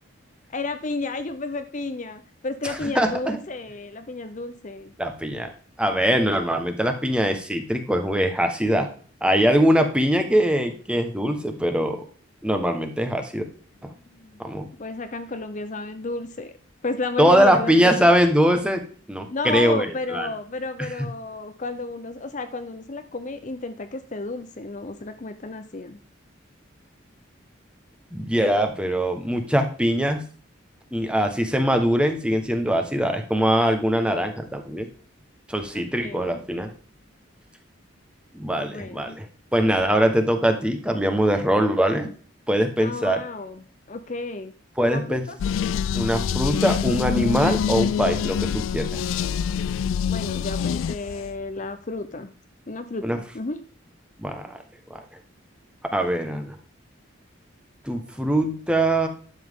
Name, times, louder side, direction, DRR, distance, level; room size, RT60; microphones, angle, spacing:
voice 1, 0.5-4.9 13.9-14.4 14.8-16.5 16.8-17.9 19.3-26.0 35.7-36.4 38.6-39.2 42.8-43.6 43.9-44.5 44.8-45.4 50.0-52.3 52.7-53.6, left 3 dB, 40° left, 8 dB, 0.6 m, -32 dB
voice 2, 2.6-3.4 5.0-5.5 5.8-8.9 9.2-12.0 12.4-13.4 13.8-13.9 14.4-14.7 17.2-18.8 19.1-20.3 28.1-30.2 30.9-34.9 35.5-36.7 38.3-39.2 39.5-42.1 42.5-43.2 44.8-45.2 45.9-49.0 53.0-53.2 54.2-54.6 54.9-55.0 55.9-56.6 57.8-59.1, equal, 5° right, 5 dB, 1.2 m, -22 dB
sound 1, 45.4-51.4, left 7 dB, 80° left, 0.3 m, -25 dB
11.5 x 7.3 x 3.7 m, 0.42 s
head